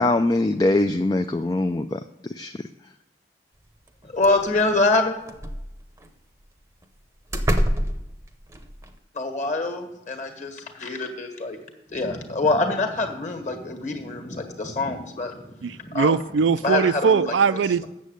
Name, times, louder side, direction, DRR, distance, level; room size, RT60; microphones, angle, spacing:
voice 1, 0.0-2.5, left 2 dB, 20° left, 7 dB, 0.3 m, -22 dB
sound 1, 3.9-4.0 4.2-4.7 5.2-6.1 6.8-6.9 7.3-8.9, equal, 15° right, 0.7 m, -26 dB
voice 2, 4.0-5.1 9.1-11.6 11.9-16.1 16.6-17.6, left 2 dB, 40° left, 5 dB, 1.6 m, -25 dB
voice 3, 15.6-17.9, right 5 dB, 90° right, 14 dB, 0.4 m, -21 dB
8.4 x 7.2 x 7.8 m, 0.89 s
head